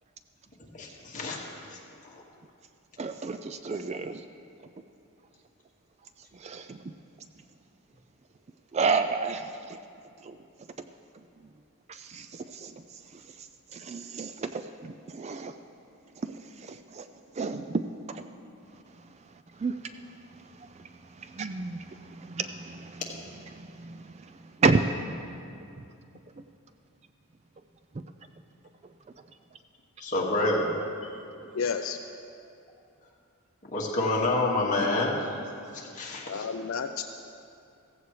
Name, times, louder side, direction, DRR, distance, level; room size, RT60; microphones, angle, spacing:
voice 1, 0.7-1.4 1.7-1.8 2.1-2.2 30.0-30.7 33.7-35.2 35.7-36.5, left 2 dB, 35° left, -3 dB, 1.9 m, -28 dB
voice 2, 3.0-4.2 6.3-7.0 8.7-9.8 10.2-10.7 11.9-15.6 16.2-17.1 17.3-18.2 18.7-24.8 26.4-26.5 27.9-28.0 29.1-29.2, right 4 dB, 30° right, 9 dB, 0.3 m, -32 dB
voice 3, 31.6-32.0 36.2-37.0, left 6 dB, 60° left, 6 dB, 0.4 m, -31 dB
16.0 x 15.0 x 3.2 m, 2.6 s
head